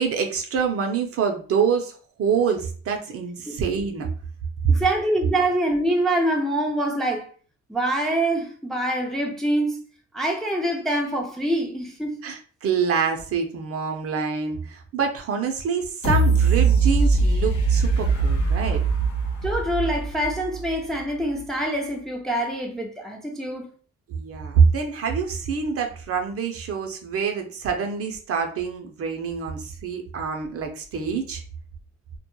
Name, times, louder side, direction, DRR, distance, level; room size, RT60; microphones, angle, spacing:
voice 1, 0.0-4.1 12.2-18.8 24.1-31.4, right 6 dB, 50° right, 0.5 m, -26 dB
voice 2, 4.7-7.3 7.7-9.8 10.1-12.2 19.4-23.7, right 1 dB, ahead, 0.4 m, -25 dB
sound 1, 16.0-20.9 21.4-21.5, right 4 dB, 85° left, 0.9 m, -21 dB
2.2 x 2.0 x 2.9 m
cardioid pair, 90°, 30 cm